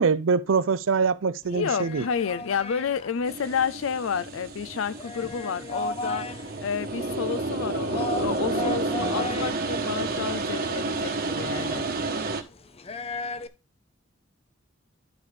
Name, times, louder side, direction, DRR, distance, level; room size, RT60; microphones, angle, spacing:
voice 1, 0.0-2.0, right 5 dB, 70° right, 0.6 m, -23 dB
sound 1, 1.4-13.5, left 2 dB, 30° left, 0.6 m, -37 dB
voice 2, 1.5-11.8, left 6 dB, 75° left, 0.5 m, -30 dB
sound 2, 3.3-12.4, right 3 dB, 50° right, 1.2 m, -30 dB
12.0 x 5.0 x 3.4 m
head